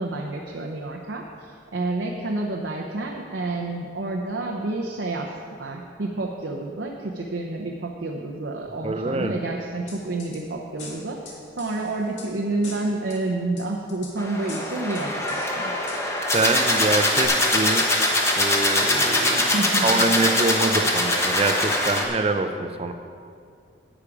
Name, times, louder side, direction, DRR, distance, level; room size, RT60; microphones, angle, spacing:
voice 1, 0.0-5.3 5.6-15.7 19.5-20.2, right 2 dB, 75° right, 0 dB, 0.7 m, -29 dB
voice 2, 8.8-9.3 16.3-17.9 18.4-19.5 19.8-22.9, right 3 dB, 30° right, 7 dB, 0.5 m, -25 dB
sound 1, 9.9-10.4 10.8-12.3 12.6-13.2 13.6-14.1 14.5-15.5 15.9-16.0 16.3-16.9 17.2-17.3, left 3 dB, 85° left, 2.0 m, -41 dB
sound 2, 14.2-22.0, left 1 dB, 15° left, 0.9 m, -22 dB
10.0 x 8.3 x 4.9 m, 2.3 s
head